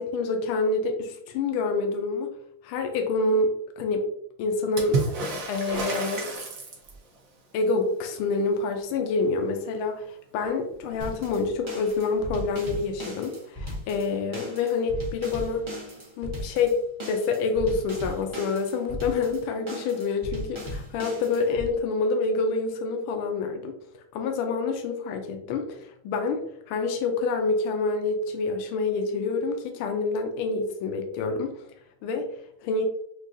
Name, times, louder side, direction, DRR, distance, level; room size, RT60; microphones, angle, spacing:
voice 1, 0.0-2.3 2.6-4.0 4.4-5.1 5.5-6.3 7.5-15.6 16.2-16.8 17.1-26.4 26.7-31.5 32.0-32.3 32.6-32.8, left 3 dB, 80° left, 4 dB, 1.4 m, -27 dB
Water / Splash splatter, 4.8-7.2 10.4-10.5 10.8-11.6 12.6-12.7, right 3 dB, 55° right, 1.0 m, -30 dB
sound 1, 11.0-21.7, equal, 35° right, 0.4 m, -37 dB
6.2 x 2.4 x 2.6 m, 0.72 s
omnidirectional pair, 2.4 m